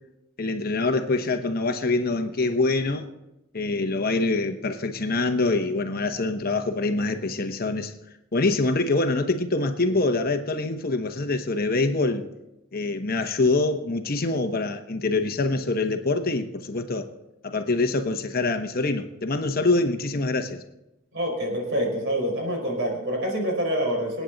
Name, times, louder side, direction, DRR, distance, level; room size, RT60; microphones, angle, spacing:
voice 1, 0.4-3.1 3.5-7.9 8.3-12.3 12.7-17.1 17.4-20.6, left 3 dB, 40° left, 7 dB, 0.9 m, -25 dB
voice 2, 21.1-24.2, equal, 55° right, 0 dB, 4.8 m, -26 dB
27.0 x 9.2 x 4.0 m, 0.94 s
head